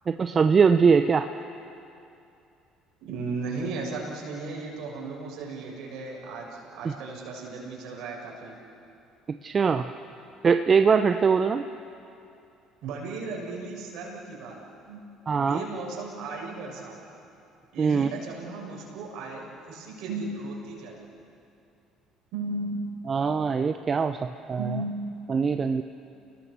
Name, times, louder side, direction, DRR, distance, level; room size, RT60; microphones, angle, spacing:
voice 1, 0.1-1.3 9.3-9.9 10.4-11.7 15.3-15.6 17.8-18.1 23.1-24.8 25.3-25.8, right 5 dB, 40° right, 8 dB, 0.8 m, -22 dB
voice 2, 3.0-8.6 12.8-14.6 14.9-15.0 15.3-17.0 17.7-21.0 22.3-22.8 24.6-25.0, right 3 dB, 70° right, -1 dB, 6.8 m, -35 dB
30.0 x 19.5 x 7.0 m, 2.7 s
hypercardioid pair, 60°, 0 cm